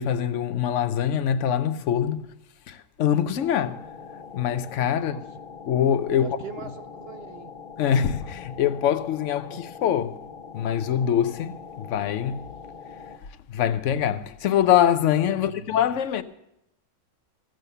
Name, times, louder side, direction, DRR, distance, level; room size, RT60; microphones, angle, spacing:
voice 1, 0.0-2.2 2.7-3.8 4.3-5.2 5.7-6.3 7.8-10.2 10.5-12.4 13.5-16.2, left 9 dB, 65° left, 1.0 m, -24 dB
sound 1, 3.4-13.2, left 6 dB, 45° left, 1.2 m, -43 dB
voice 2, 6.1-7.5 15.3-15.6, right 7 dB, 60° right, 0.7 m, -40 dB
15.5 x 7.7 x 6.6 m
omnidirectional pair, 1.5 m